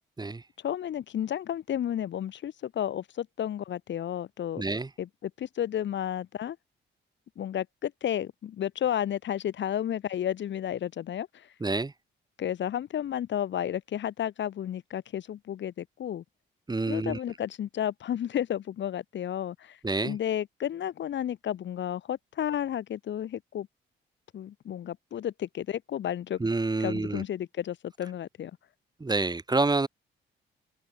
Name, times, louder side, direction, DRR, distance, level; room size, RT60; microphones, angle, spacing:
voice 1, 0.6-4.6 5.0-6.6 7.4-11.5 12.4-16.2 16.9-19.8 20.0-23.7 24.3-26.4 26.8-28.5, left 10 dB, 65° left, 4.5 m, -32 dB
voice 2, 4.6-4.9 11.6-11.9 16.7-17.2 19.8-20.2 26.4-27.2 29.0-29.9, right 3 dB, 20° right, 3.7 m, -28 dB
open air
cardioid pair, 90°, 20 cm